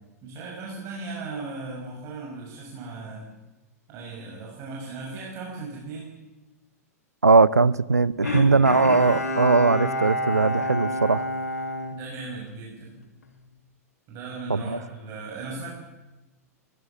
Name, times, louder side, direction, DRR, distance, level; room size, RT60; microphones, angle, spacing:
voice 1, 0.2-3.3 3.9-6.1 8.2-8.6 11.9-12.9 14.1-15.7, right 3 dB, 35° right, -3 dB, 6.7 m, -37 dB
voice 2, 7.2-11.3 14.5-14.8, right 4 dB, 85° right, 21 dB, 0.7 m, -20 dB
Bowed string instrument, 8.2-12.7 13.2-13.3, left 1 dB, 80° left, 2.6 m, -29 dB
21.5 x 19.5 x 7.2 m, 1.1 s
figure-of-eight pair, 100°, 8 cm